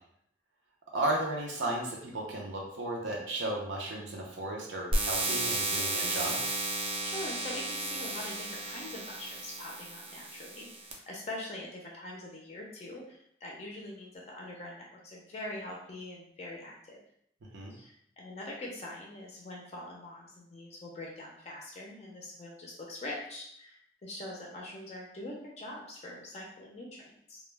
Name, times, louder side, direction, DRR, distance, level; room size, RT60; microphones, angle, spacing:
voice 1, 0.9-6.4 17.5-17.7, right 1 dB, 80° right, -2 dB, 0.5 m, -34 dB
sound 1, 4.9-10.9, right 2 dB, 30° right, 0.3 m, -33 dB
voice 2, 7.0-10.7 11.1-17.0 17.7-27.4, left 1 dB, 35° left, -2 dB, 0.4 m, -43 dB
2.2 x 2.1 x 3.1 m, 0.70 s
head